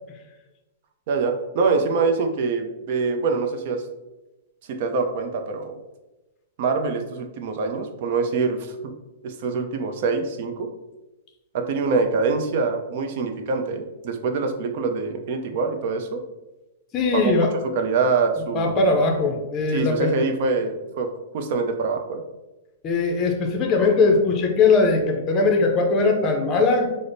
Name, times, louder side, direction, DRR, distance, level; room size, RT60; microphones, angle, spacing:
voice 1, 1.1-3.8 4.7-5.8 6.6-8.9 9.2-10.7 11.5-16.2 17.1-17.3 17.7-18.8 19.7-21.1 21.3-22.2, right 4 dB, 50° right, 5 dB, 0.5 m, -24 dB
voice 2, 16.9-17.5 18.5-20.1 22.8-27.0, left 3 dB, 25° left, 3 dB, 0.5 m, -20 dB
4.9 x 2.0 x 2.6 m, 1.0 s
hypercardioid pair, 155°, 0 cm